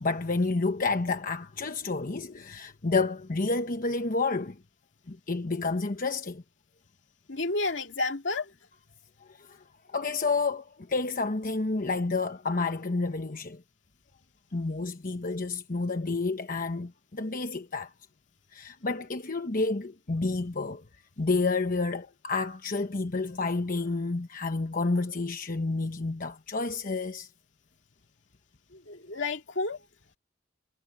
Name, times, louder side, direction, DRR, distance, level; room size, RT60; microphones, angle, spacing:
voice 1, 0.0-4.6 5.1-6.4 9.3-9.6 9.9-13.6 14.5-17.9 18.5-20.8 21.2-27.3, left 3 dB, 50° left, 1.0 m, -30 dB
voice 2, 7.3-8.5 28.7-29.8, left 3 dB, 70° left, 2.5 m, -31 dB
head